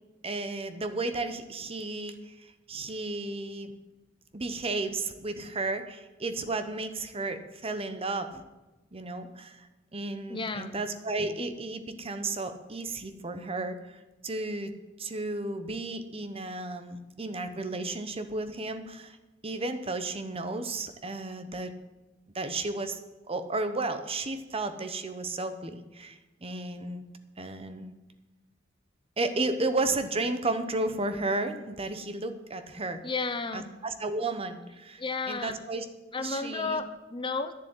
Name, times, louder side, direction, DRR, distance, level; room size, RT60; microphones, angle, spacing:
voice 1, 0.2-2.3 2.7-3.7 4.3-8.4 8.9-9.7 9.9-14.7 15.0-19.2 19.4-21.7 22.3-23.0 23.3-27.0 27.4-27.9 29.2-33.0 33.5-35.8 36.2-36.8, right 2 dB, 30° right, 9 dB, 0.9 m, -33 dB
voice 2, 10.3-10.7 33.0-33.7 35.0-35.6 36.1-37.5, left 4 dB, 25° left, 10 dB, 0.7 m, -32 dB
10.5 x 7.4 x 9.6 m, 1.1 s
head